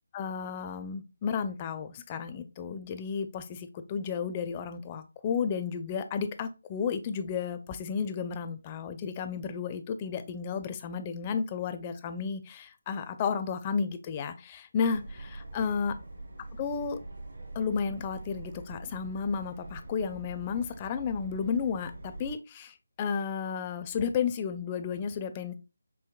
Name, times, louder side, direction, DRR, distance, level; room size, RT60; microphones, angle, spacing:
voice 1, 0.1-15.9 16.6-17.0 17.6-25.5, left 6 dB, 25° left, 10 dB, 0.4 m, -32 dB
Subway metro underground, 14.8-22.3, right 2 dB, 60° right, 1.8 m, -44 dB
4.6 x 3.0 x 2.3 m, 0.29 s
figure-of-eight pair, 160°, 0 cm